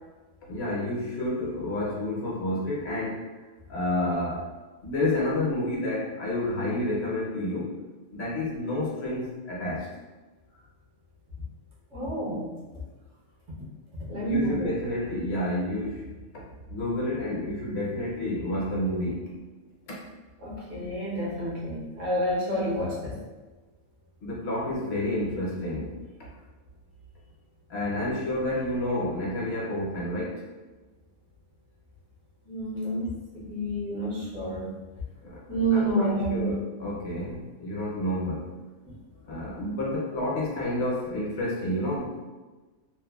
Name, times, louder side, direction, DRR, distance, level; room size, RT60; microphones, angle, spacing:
voice 1, 0.5-3.4 3.7-4.4 4.8-7.8 8.1-9.9 14.2-16.1 16.7-19.4 19.9-20.0 24.2-25.9 26.2-26.3 27.7-30.4 35.2-35.4 35.7-38.6 39.2-42.2, left 1 dB, 60° left, -5 dB, 0.9 m, -30 dB
voice 2, 11.9-12.5 14.1-14.7 20.4-23.2 32.4-34.7 35.5-36.5 38.8-39.0, right 1 dB, 75° right, -6 dB, 1.2 m, -29 dB
3.0 x 2.1 x 2.2 m, 1.2 s
omnidirectional pair, 1.3 m